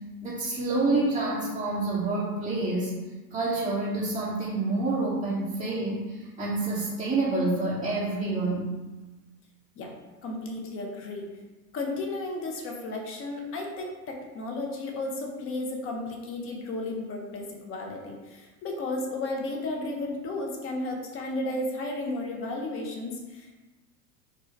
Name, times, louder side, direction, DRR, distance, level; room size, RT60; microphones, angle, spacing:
voice 1, 0.2-2.9 3.3-8.6, right 2 dB, 10° right, -9 dB, 0.9 m, -28 dB
voice 2, 10.2-11.3 11.7-23.6, left 2 dB, 30° left, 1 dB, 0.8 m, -33 dB
3.8 x 2.2 x 4.5 m, 1.2 s
hypercardioid pair, 105°, 47 cm